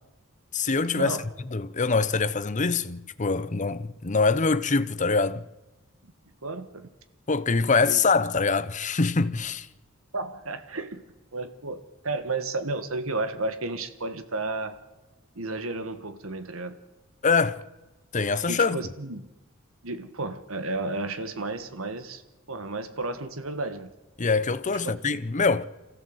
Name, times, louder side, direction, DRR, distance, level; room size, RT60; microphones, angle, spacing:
voice 1, 0.5-1.2 1.5-5.4 7.3-9.7 17.2-17.6 18.1-18.9 24.2-25.6, left 4 dB, 35° left, 0.8 m, -24 dB
voice 2, 6.4-6.9 7.8-8.0 10.1-11.0 11.3-11.8 12.0-14.8 15.4-16.8 18.5-19.3 19.8-22.2 22.5-23.9 24.8-25.2, right 2 dB, 85° right, 1.7 m, -32 dB
25.5 x 15.5 x 8.0 m
head